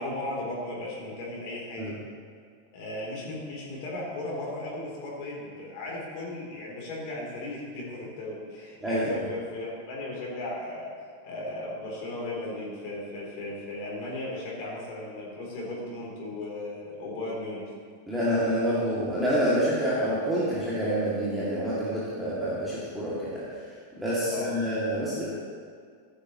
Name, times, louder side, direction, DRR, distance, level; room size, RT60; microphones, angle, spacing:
voice 1, 0.0-1.9 2.7-10.9 11.2-17.7 24.2-24.5, left 2 dB, 45° left, -4 dB, 3.4 m, -36 dB
voice 2, 8.8-9.3 18.1-23.4 24.0-25.3, equal, 5° right, -9 dB, 2.5 m, -27 dB
15.0 x 11.0 x 3.1 m, 2.1 s
figure-of-eight pair, 90°, 0 cm